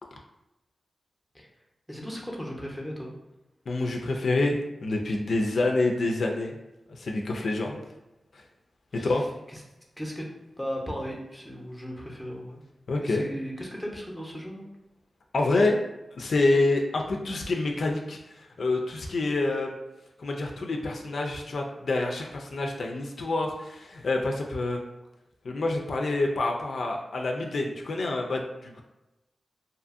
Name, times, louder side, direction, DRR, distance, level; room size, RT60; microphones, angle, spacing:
voice 1, 1.9-3.1 8.9-9.2 9.5-9.6 10.0-10.3 10.6-12.6 13.0-14.7, equal, 5° left, -2 dB, 0.6 m, -36 dB
voice 2, 3.7-6.5 6.9-7.8 8.9-9.3 12.9-13.2 15.3-15.8 16.1-19.7 20.2-24.8 25.4-28.8, left 2 dB, 75° left, 1 dB, 0.3 m, -27 dB
2.6 x 2.5 x 2.4 m, 0.98 s
cardioid pair, 65°, 0 cm